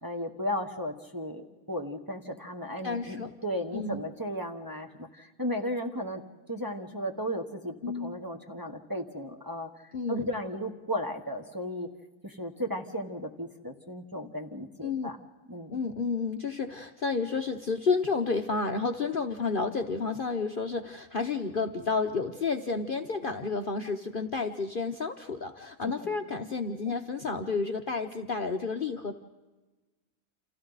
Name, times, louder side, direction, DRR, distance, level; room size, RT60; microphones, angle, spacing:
voice 1, 0.0-6.2 6.5-11.9 12.2-15.2 15.5-15.8 25.8-26.1 26.8-26.9, equal, 15° right, 2 dB, 1.2 m, -35 dB
voice 2, 2.8-3.3 3.7-4.0 7.8-8.2 9.9-10.3 14.8-15.1 15.7-29.2, left 4 dB, 45° left, 5 dB, 0.9 m, -31 dB
29.5 x 27.5 x 4.0 m, 1.2 s
omnidirectional pair, 1.5 m